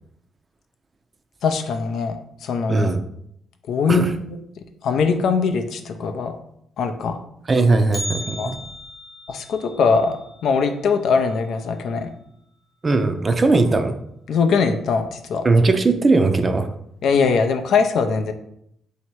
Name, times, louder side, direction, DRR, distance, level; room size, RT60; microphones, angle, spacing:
voice 1, 1.4-2.2 2.4-2.9 3.7-4.4 4.8-6.3 6.8-7.2 8.4-8.5 9.3-12.1 14.3-15.5 17.0-18.3, left 5 dB, 70° left, 6 dB, 0.4 m, -21 dB
voice 2, 2.7-3.0 3.9-4.1 7.5-8.6 12.8-13.9 15.4-16.7, right 3 dB, 30° right, 7 dB, 0.5 m, -18 dB
Bell, 7.9-12.0 12.3-12.4 12.9-13.0 13.8-13.9 14.6-14.9 15.3-15.4, left 1 dB, 40° left, 1.0 m, -37 dB
3.1 x 2.8 x 4.5 m, 0.73 s
cardioid pair, 90°, 0 cm